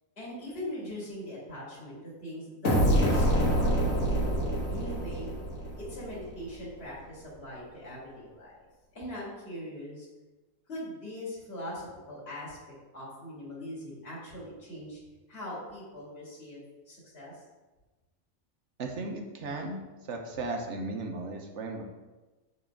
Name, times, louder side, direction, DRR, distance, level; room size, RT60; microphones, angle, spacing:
voice 1, 0.2-4.1 4.7-5.3 5.8-8.6 8.9-10.1 10.7-15.0 15.3-16.6 16.9-17.4, equal, 45° left, -7 dB, 2.5 m, -41 dB
sound 1, 2.6-6.3, equal, 65° left, 1.8 m, -26 dB
voice 2, 18.8-21.8, right 2 dB, 60° right, 3 dB, 1.2 m, -36 dB
7.3 x 4.3 x 5.1 m, 1.2 s
omnidirectional pair, 1.5 m